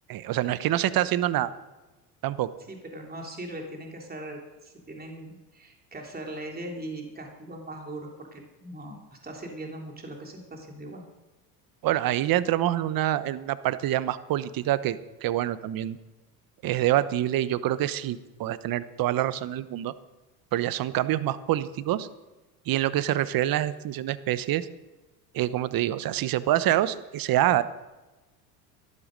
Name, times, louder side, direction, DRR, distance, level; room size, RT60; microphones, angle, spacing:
voice 1, 0.1-1.5 2.2-2.5 11.8-16.0 16.6-19.9 20.5-22.1 22.7-24.7 25.3-27.6, right 13 dB, 45° right, 15 dB, 0.9 m, -26 dB
voice 2, 2.7-11.0, right 1 dB, 20° right, 1 dB, 3.3 m, -40 dB
13.5 x 12.0 x 5.2 m, 1.1 s
hypercardioid pair, 85°, 48 cm